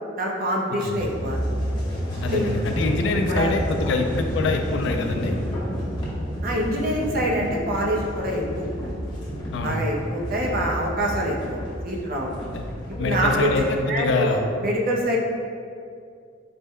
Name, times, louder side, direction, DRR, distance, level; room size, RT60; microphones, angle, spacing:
voice 1, 0.2-1.4 2.3-2.6 3.3-3.5 6.4-8.9 9.6-11.4 11.8-12.3 13.0-13.5 13.9-15.2, equal, 50° right, -2 dB, 0.5 m, -25 dB
sound 1, 0.9-13.8, equal, 25° left, 0.8 m, -30 dB
voice 2, 2.2-5.4 9.5-9.8 12.5-12.7 13.0-14.4, left 3 dB, 65° left, 4 dB, 0.3 m, -25 dB
4.1 x 2.1 x 3.6 m, 2.3 s
head